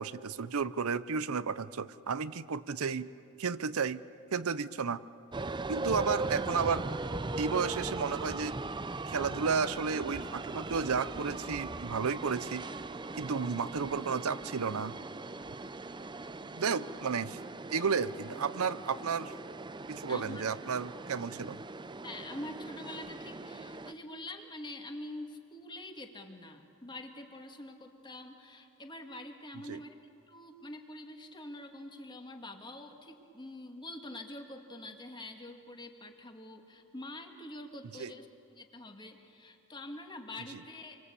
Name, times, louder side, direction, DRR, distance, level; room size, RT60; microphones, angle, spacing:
voice 1, 0.0-3.1 3.4-4.0 4.3-5.0 5.7-6.9 7.4-8.6 9.1-12.7 13.2-15.0 16.6-17.4 17.7-19.3 19.9-21.6 29.7-29.8 38.0-38.1, right 5 dB, 80° right, 14 dB, 0.7 m, -32 dB
sound 1, 5.3-23.9, right 3 dB, 20° right, 0.6 m, -39 dB
voice 2, 20.1-20.4 22.0-30.0 30.3-41.0, left 1 dB, 20° left, 4 dB, 2.0 m, -45 dB
28.0 x 24.0 x 8.4 m, 2.6 s
head